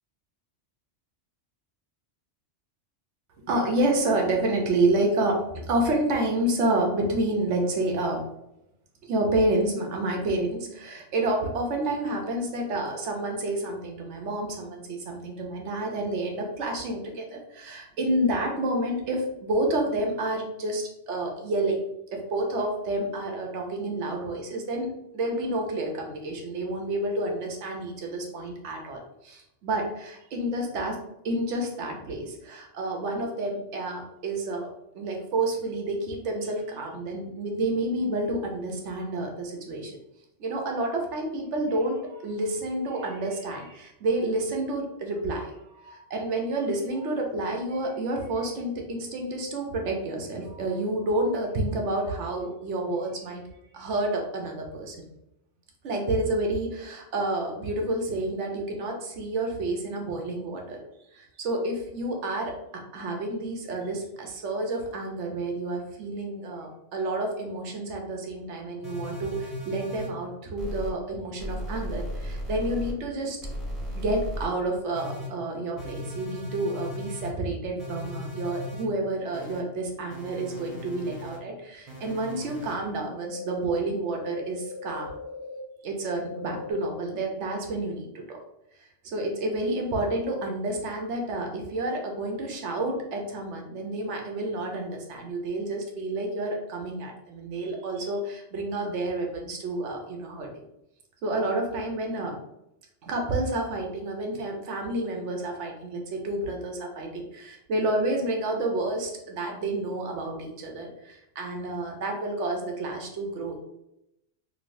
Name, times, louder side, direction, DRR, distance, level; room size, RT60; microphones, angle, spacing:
voice 1, 3.5-8.2 9.0-21.8 22.1-31.0 31.2-34.7 34.9-40.0 40.4-53.4 53.7-55.0 55.8-60.8 61.1-62.5 62.9-73.4 73.9-85.1 85.8-88.4 88.8-100.6 101.2-102.4 103.0-107.1 107.4-113.6, right 2 dB, 80° right, 1 dB, 1.0 m, -29 dB
sound 1, 68.8-70.1 70.6-70.9 71.4-72.9 73.4-74.5 74.9-75.3 75.8-77.3 77.8-78.8 79.3-79.6 80.1-81.4 81.9-82.7 83.2-83.5 84.0-85.6 86.1-86.7, left 1 dB, 30° right, 1.1 m, -37 dB
3.1 x 2.8 x 2.6 m, 0.84 s
omnidirectional pair, 1.2 m